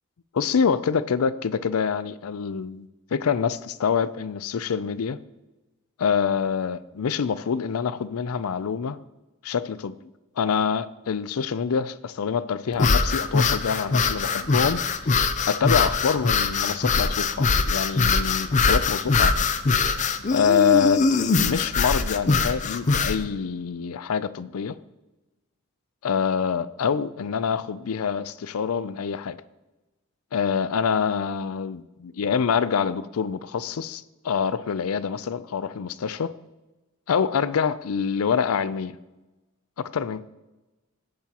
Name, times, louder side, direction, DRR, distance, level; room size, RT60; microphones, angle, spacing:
voice 1, 0.3-5.2 6.0-9.0 9.4-10.0 10.4-14.8 15.5-19.5 20.3-21.1 21.4-24.8 26.0-29.4 30.3-36.3 37.1-38.9 39.8-40.2, left 6 dB, 85° left, 0.4 m, -26 dB
sound 1, 12.7-23.2, left 4 dB, 35° left, 0.5 m, -22 dB
16.5 x 8.5 x 2.9 m
head